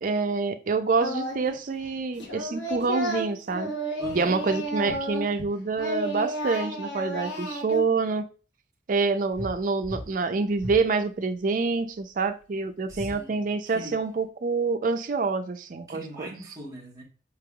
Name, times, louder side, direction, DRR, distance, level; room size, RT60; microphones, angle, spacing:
voice 1, 0.0-3.7 4.1-8.3 8.9-16.3, right 4 dB, 50° right, 0.4 m, -27 dB
Singing, 1.0-1.6 1.8-5.5 5.8-7.8, right 1 dB, 80° left, 1.0 m, -32 dB
voice 2, 4.0-4.6 12.8-14.0 15.9-17.0, right 1 dB, 20° right, 1.0 m, -42 dB
sound 1, 9.3-9.6 9.8-10.1 10.6-10.8 12.9-13.2, equal, 30° left, 1.4 m, -36 dB
5.0 x 3.3 x 2.3 m
head